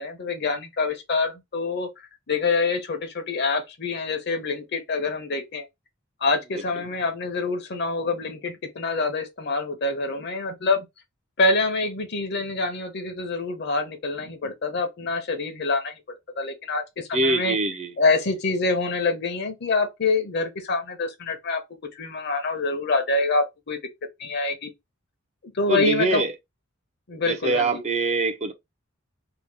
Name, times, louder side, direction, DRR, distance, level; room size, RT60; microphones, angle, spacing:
voice 1, 0.0-1.9 2.3-5.7 6.2-10.9 11.4-15.9 16.4-17.6 18.0-21.6 21.9-23.8 24.2-24.7 25.5-26.2 27.1-27.8, left 3 dB, 55° left, 0.8 m, -26 dB
voice 2, 17.1-17.9 25.7-26.3 27.3-28.5, right 2 dB, 35° right, 0.5 m, -23 dB
2.8 x 2.2 x 3.3 m
head